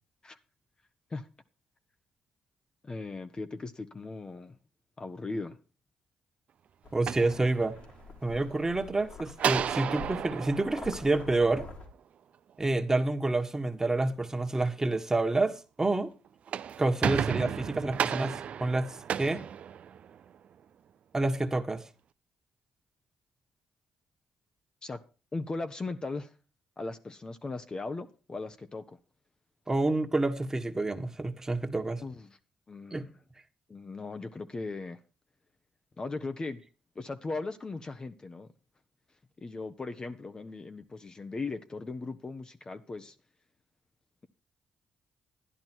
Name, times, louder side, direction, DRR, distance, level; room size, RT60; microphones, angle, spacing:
voice 1, 2.8-4.6 5.0-5.6 24.8-25.0 25.3-26.3 26.8-29.0 32.0-32.4 32.7-33.2 33.7-35.0 36.0-36.6 36.9-38.5 39.4-43.1, left 3 dB, 35° left, 1.1 m, -38 dB
sound 1, 6.8-11.9, left 3 dB, 60° left, 2.8 m, -47 dB
voice 2, 6.9-7.7 8.2-11.7 12.6-16.1 16.8-19.4 21.1-21.8 29.7-32.0 32.9-33.0, right 2 dB, 20° right, 1.6 m, -28 dB
sound 2, 6.9-8.1 9.4-11.9 16.3-20.3, right 8 dB, 65° right, 0.5 m, -33 dB
11.5 x 10.5 x 4.6 m
supercardioid pair, 55°, 2 cm